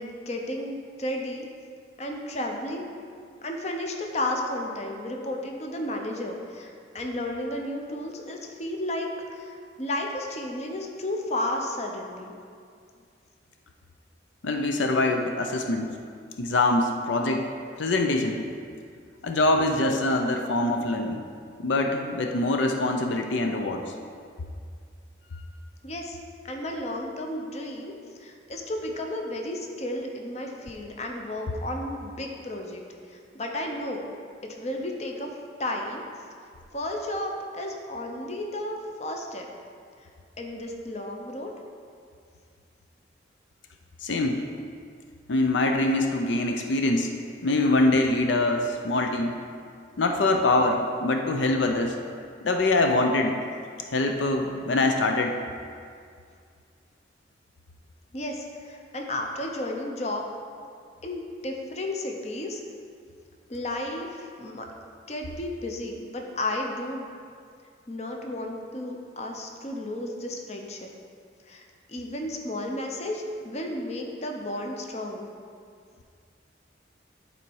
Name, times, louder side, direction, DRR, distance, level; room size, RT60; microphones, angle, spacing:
voice 1, 0.0-1.5 2.0-2.9 3.4-12.4 25.8-26.2 26.4-27.9 28.2-32.8 33.1-34.0 34.4-35.3 35.6-36.0 36.7-39.5 40.4-41.5 58.1-60.2 61.0-62.6 63.5-64.7 65.1-67.1 67.9-70.9 71.4-75.3, left 1 dB, 35° left, 2 dB, 0.7 m, -33 dB
voice 2, 14.4-16.0 16.4-17.4 17.8-18.4 19.2-21.2 21.6-23.8 44.0-44.4 45.3-47.1 47.4-49.3 50.0-51.9 52.4-53.4 53.9-55.4, left 2 dB, 80° left, 4 dB, 0.6 m, -24 dB
10.5 x 4.1 x 4.7 m, 2.2 s
head